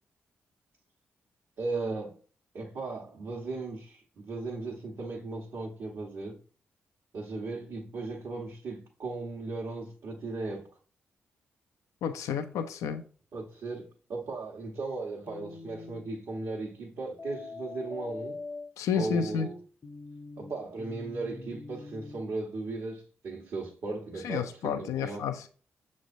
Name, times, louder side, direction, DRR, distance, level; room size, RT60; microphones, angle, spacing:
voice 1, 1.6-2.1 2.5-6.4 7.1-10.7 13.3-18.4 18.9-19.5 20.4-25.2, right 3 dB, 70° right, 1.1 m, -37 dB
voice 2, 12.0-13.0 18.8-19.5 24.2-25.5, left 7 dB, 80° left, 0.4 m, -30 dB
sound 1, 15.3-16.1 17.2-22.2, left 3 dB, 35° left, 0.7 m, -43 dB
6.5 x 3.2 x 2.6 m
supercardioid pair, 40°, 5 cm